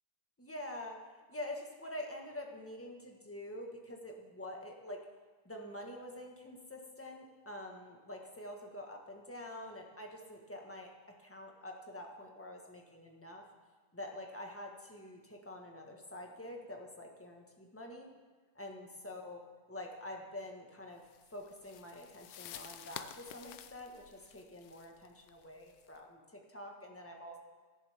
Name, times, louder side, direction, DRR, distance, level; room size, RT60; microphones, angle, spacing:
voice 1, 0.4-1.0 1.3-5.0 5.4-10.9 11.2-13.4 13.9-18.1 18.5-19.4 19.7-27.4, left 1 dB, 10° left, 1 dB, 1.2 m, -46 dB
sound 1, 21.1-26.0, left 10 dB, 70° left, 0.9 m, -51 dB
18.0 x 10.5 x 3.6 m, 1.4 s
omnidirectional pair, 2.0 m